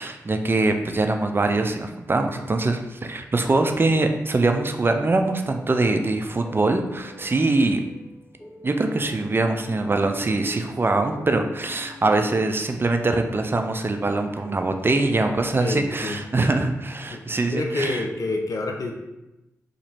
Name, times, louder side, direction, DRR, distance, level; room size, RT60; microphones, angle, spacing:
voice 1, 0.0-7.8 8.6-18.0, right 2 dB, 35° right, 5 dB, 0.4 m, -23 dB
sound 1, 5.0-16.7, left 2 dB, 20° left, 0.8 m, -45 dB
voice 2, 15.6-16.2 17.1-17.2 17.5-18.9, left 2 dB, 65° left, 3 dB, 0.6 m, -27 dB
2.9 x 2.7 x 4.4 m, 0.97 s
cardioid pair, 45°, 6 cm